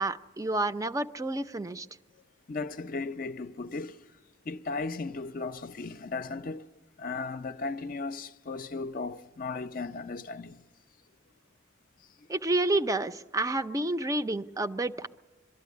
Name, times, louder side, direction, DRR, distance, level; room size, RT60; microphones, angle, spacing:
voice 1, 0.0-1.9 12.3-15.1, right 2 dB, 20° right, 0.5 m, -29 dB
voice 2, 2.5-4.0 4.5-6.6 7.0-10.6, left 3 dB, 45° left, 0.5 m, -36 dB
23.5 x 13.0 x 9.4 m
head